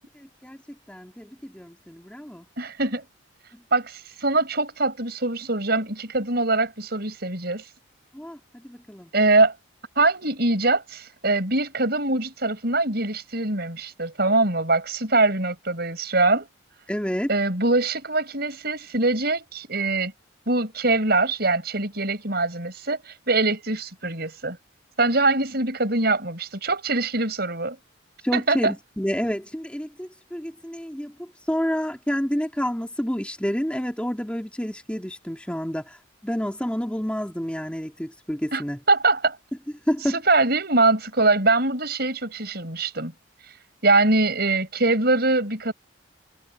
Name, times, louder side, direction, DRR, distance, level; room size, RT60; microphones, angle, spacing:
voice 1, 0.9-2.5 8.1-9.1 16.9-17.3 28.2-38.8 39.9-40.2, equal, 5° left, 2.3 m, -29 dB
voice 2, 2.6-3.0 3.7-7.6 9.1-9.5 10.0-16.5 17.3-20.1 20.5-24.6 25.0-27.8 28.3-28.7 38.5-38.6 38.9-39.4 40.1-43.1 43.8-45.7, right 2 dB, 50° right, 5.7 m, -23 dB
head